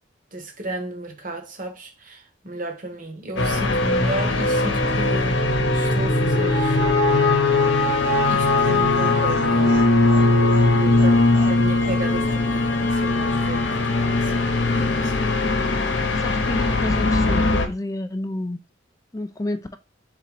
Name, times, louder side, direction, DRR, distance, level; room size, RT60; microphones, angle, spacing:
voice 1, 0.3-5.3 5.7-6.8 8.3-9.9 10.8-15.3, right 1 dB, 45° right, 1.1 m, -33 dB
sound 1, 3.4-17.7, left 2 dB, 60° left, 0.8 m, -20 dB
Laughter, 8.5-12.0 12.3-12.4 12.7-12.8, right 2 dB, 70° right, 2.3 m, -40 dB
voice 2, 16.1-18.6 19.1-19.8, left 1 dB, 15° left, 0.3 m, -29 dB
3.7 x 2.9 x 4.8 m
head